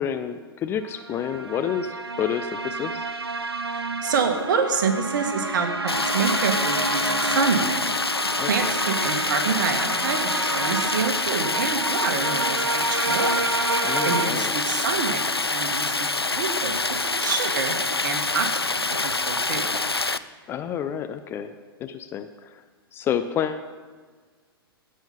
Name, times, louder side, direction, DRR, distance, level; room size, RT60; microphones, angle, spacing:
voice 1, 0.0-3.0 8.4-8.7 13.8-14.5 20.5-21.5 21.8-22.6 22.9-23.7, left 8 dB, 20° left, 9 dB, 0.4 m, -29 dB
sound 1, 0.9-14.3, right 2 dB, 85° right, 0.7 m, -29 dB
voice 2, 3.7-7.8 8.5-13.4 13.8-15.2 15.5-16.1 16.3-17.7 18.0-19.6, right 5 dB, 50° right, 5 dB, 1.6 m, -27 dB
Stream, 5.9-20.2, left 3 dB, 90° left, 0.4 m, -26 dB
16.0 x 5.6 x 5.3 m, 1.5 s
figure-of-eight pair, 105°, 13 cm